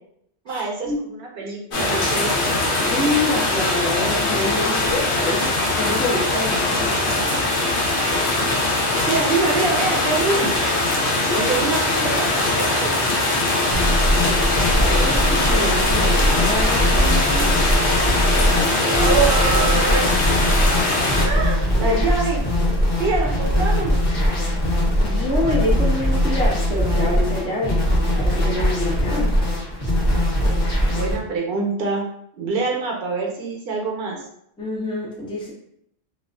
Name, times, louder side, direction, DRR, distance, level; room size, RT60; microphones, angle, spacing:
voice 1, 0.5-2.4 9.0-10.5 11.4-13.2 18.9-20.2 21.1-22.4 23.0-23.9 30.9-32.0 32.4-34.2, right 4 dB, 60° right, 0 dB, 0.8 m, -25 dB
sound 1, 1.7-21.3, left 2 dB, 80° left, 0.9 m, -21 dB
voice 2, 2.8-7.3 11.3-11.5 14.5-17.6 18.5-19.1 21.8-22.0 25.0-27.8 28.1-29.3 34.6-35.5, left 2 dB, 10° left, -5 dB, 0.3 m, -26 dB
sound 2, 13.7-31.2, equal, 60° left, 0.9 m, -21 dB
2.4 x 2.4 x 2.2 m, 0.71 s
omnidirectional pair, 1.1 m